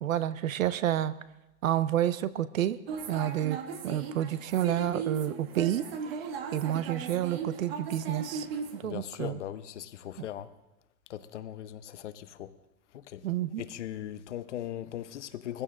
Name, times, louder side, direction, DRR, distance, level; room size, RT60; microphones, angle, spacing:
voice 1, 0.0-1.1 1.6-2.8 3.1-3.6 3.8-5.9 6.2-6.3 6.5-8.5 8.7-9.4 10.2-10.3 13.2-13.6, right 12 dB, 60° right, 0.8 m, -29 dB
sound 1, 2.9-8.8, right 5 dB, 40° right, 1.3 m, -37 dB
voice 2, 8.8-10.5 11.1-12.5 12.9-13.2 13.6-15.6, left 11 dB, 50° left, 0.8 m, -39 dB
21.5 x 15.5 x 3.8 m
supercardioid pair, 170°, 46 cm